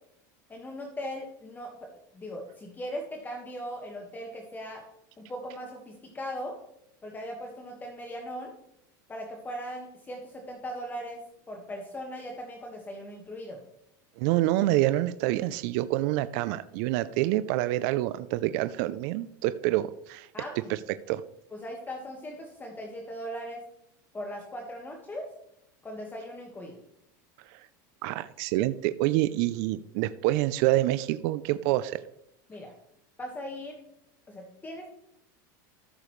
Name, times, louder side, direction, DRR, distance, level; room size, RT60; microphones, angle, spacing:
voice 1, 0.5-1.9 2.1-4.8 5.2-6.5 7.0-8.5 9.1-11.2 11.5-13.6 20.3-20.7 21.5-23.6 24.1-25.3 25.8-26.8 32.5-32.7 33.2-33.8 34.3-34.9, equal, 15° left, 1 dB, 1.6 m, -39 dB
voice 2, 14.2-20.3 20.7-20.8 21.1-21.2 27.5-27.7 28.0-32.0, right 15 dB, 65° right, 13 dB, 0.4 m, -27 dB
14.0 x 6.8 x 3.2 m, 0.77 s
supercardioid pair, 115°, 11 cm